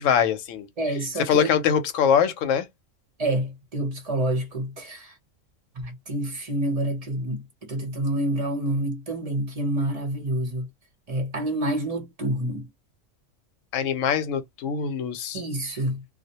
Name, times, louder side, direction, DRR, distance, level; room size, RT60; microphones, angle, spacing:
voice 1, 0.0-0.7 1.2-2.7 13.7-15.4, left 8 dB, 90° left, 0.9 m, -23 dB
voice 2, 0.8-1.5 3.2-5.1 5.8-10.7 11.1-12.7 15.3-16.0, right 1 dB, 40° right, 0.7 m, -28 dB
2.2 x 2.1 x 2.8 m
omnidirectional pair, 1.3 m